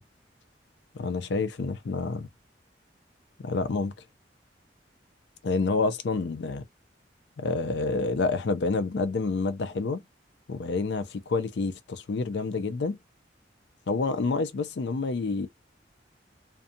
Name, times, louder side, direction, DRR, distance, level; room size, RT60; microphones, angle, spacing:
voice 1, 0.9-2.3 3.4-3.9 5.4-6.6 7.4-10.0 10.5-13.0 13.9-15.5, left 3 dB, 65° left, 0.4 m, -28 dB
2.6 x 2.3 x 2.6 m
head